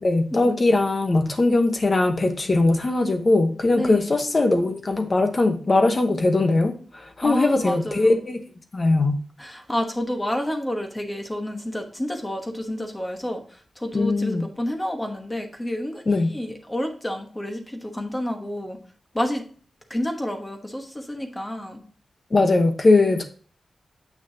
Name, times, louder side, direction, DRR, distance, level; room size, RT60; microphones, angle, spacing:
voice 1, 0.0-8.4 8.7-9.2 13.9-14.5 16.1-16.3 22.3-23.2, left 2 dB, 35° left, 7 dB, 1.0 m, -20 dB
voice 2, 3.7-4.1 7.2-8.2 9.4-16.0 16.3-18.8 19.1-19.4 19.9-21.8, left 1 dB, 10° left, 4 dB, 1.1 m, -29 dB
7.5 x 6.0 x 2.7 m, 0.43 s
wide cardioid pair, 155°, 0 cm